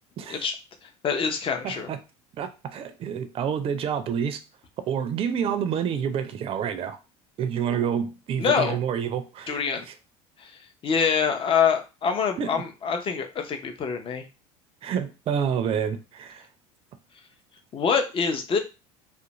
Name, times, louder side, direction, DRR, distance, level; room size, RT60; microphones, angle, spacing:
voice 1, 1.0-1.9 7.6-7.9 8.4-8.8 9.5-9.9 10.4-10.5 10.8-14.2 17.7-18.6, left 6 dB, 35° left, 0.6 m, -25 dB
voice 2, 1.6-2.0 2.4-4.4 4.9-7.0 7.4-9.6 12.4-12.5 14.8-16.4, right 8 dB, 40° right, 0.4 m, -28 dB
2.4 x 2.1 x 2.9 m
supercardioid pair, 90°, 15 cm